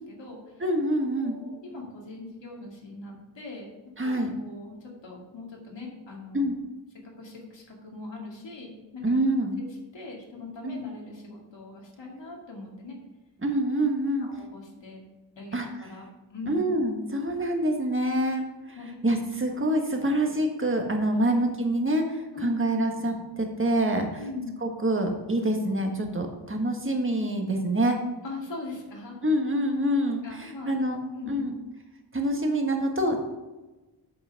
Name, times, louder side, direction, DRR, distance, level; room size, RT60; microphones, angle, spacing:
voice 1, 0.1-0.6 1.2-3.7 4.0-6.5 7.0-9.1 9.9-13.0 14.2-15.0 15.3-16.6 18.8-19.0 21.3-21.4 22.3-22.7 24.2-24.6 28.2-29.2 30.2-30.8 31.1-31.5, left 3 dB, 90° left, -2 dB, 2.4 m, -41 dB
voice 2, 0.6-1.3 4.0-4.3 6.3-6.5 9.0-9.6 10.6-10.8 13.4-14.3 15.5-15.7 16.5-18.8 19.0-24.1 24.6-28.0 29.2-31.0 31.3-31.5 32.1-33.2, right 1 dB, 30° right, 3 dB, 1.5 m, -26 dB
8.0 x 5.8 x 5.8 m, 1.1 s
wide cardioid pair, 95°, 43 cm